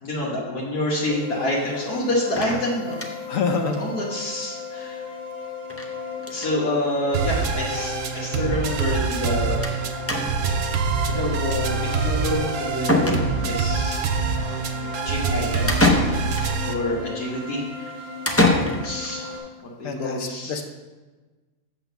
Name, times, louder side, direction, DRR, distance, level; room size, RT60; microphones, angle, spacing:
voice 1, 0.0-3.1 3.8-5.0 6.3-9.7 10.3-10.7 11.1-14.0 14.4-15.8 16.6-17.9 18.6-19.5 19.8-20.6, left 1 dB, 90° left, -6 dB, 1.9 m, -28 dB
sound 1, 1.1-19.4, left 4 dB, 40° left, 2.1 m, -35 dB
sound 2, 2.4-3.4 3.7-3.8 4.1-4.2 4.4-4.5 5.7-5.9 6.2-6.5 7.4-7.5 7.8-7.9 9.6-9.8 10.1-10.6 12.3-12.4 12.9-13.7 15.7-16.5 18.2-19.1, left 1 dB, 15° left, 0.4 m, -23 dB
voice 2, 3.3-3.8 18.6-18.8 19.8-20.6, left 5 dB, 65° left, 5 dB, 1.2 m, -26 dB
sound 3, 7.1-16.7, right 5 dB, 65° right, 1.0 m, -25 dB
8.0 x 3.9 x 6.8 m, 1.2 s
omnidirectional pair, 1.6 m